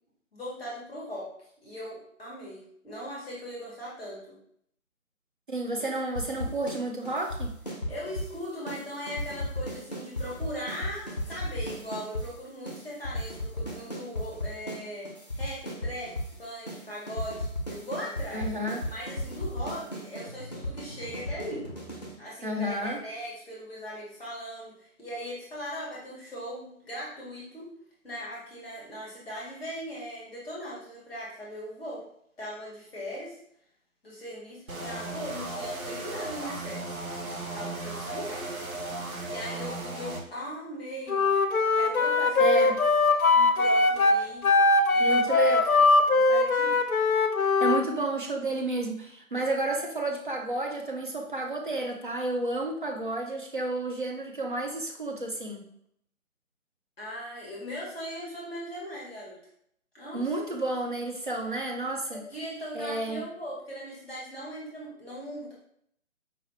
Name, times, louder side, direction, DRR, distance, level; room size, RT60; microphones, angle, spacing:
voice 1, 0.3-1.3 1.6-4.3 5.8-5.9 7.9-15.1 15.3-16.1 16.4-18.5 18.8-21.7 22.2-27.7 28.0-32.0 32.4-33.4 34.0-36.9 37.2-38.5 39.3-41.3 41.7-42.7 43.3-44.5 44.9-45.7 46.1-46.8 57.0-59.4 59.9-60.3 62.1-65.5, equal, ahead, -6 dB, 0.8 m, -39 dB
voice 2, 5.5-7.5 18.3-18.8 22.4-23.0 42.4-42.7 45.0-45.9 47.6-55.6 60.1-62.2 62.7-63.2, right 2 dB, 40° right, 1 dB, 0.6 m, -31 dB
sound 1, 6.1-6.8 7.0-8.3 8.7-8.8 9.1-12.3 12.7-12.8 13.0-14.8 15.0-16.3 16.7-16.8 17.1-22.1, left 1 dB, 35° left, 0.5 m, -34 dB
sound 2, 34.7-40.2, right 2 dB, 80° right, 0.9 m, -36 dB
Wind instrument woodwind instrument, 41.1-47.8, left 3 dB, 85° left, 0.6 m, -21 dB
4.7 x 2.3 x 3.3 m, 0.69 s
figure-of-eight pair, 150°, 41 cm